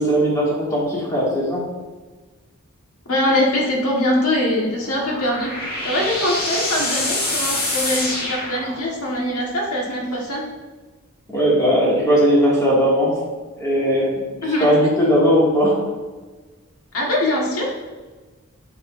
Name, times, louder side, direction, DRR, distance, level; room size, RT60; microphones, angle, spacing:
voice 1, 0.0-1.6 11.3-13.2 13.6-14.1 14.6-15.8, equal, 15° left, -6 dB, 2.2 m, -18 dB
voice 2, 3.1-10.4 14.4-14.7 16.9-17.7, left 1 dB, 80° left, -2 dB, 1.7 m, -22 dB
sound 1, 4.7-9.2, left 2 dB, 45° left, 1.9 m, -26 dB
8.5 x 6.5 x 2.7 m, 1.3 s
head